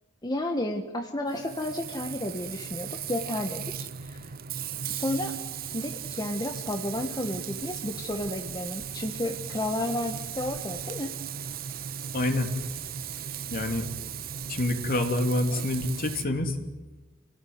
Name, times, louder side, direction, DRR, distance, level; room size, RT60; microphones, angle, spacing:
voice 1, 0.2-4.3 4.9-5.3 5.7-11.2, left 1 dB, 20° left, 3 dB, 1.5 m, -32 dB
Frying (food), 1.3-16.2, right 8 dB, 50° right, 0.7 m, -37 dB
voice 2, 12.1-12.5 13.5-13.9 14.5-16.6, left 1 dB, 45° left, 5 dB, 2.9 m, -27 dB
28.0 x 17.5 x 9.6 m, 1.1 s
head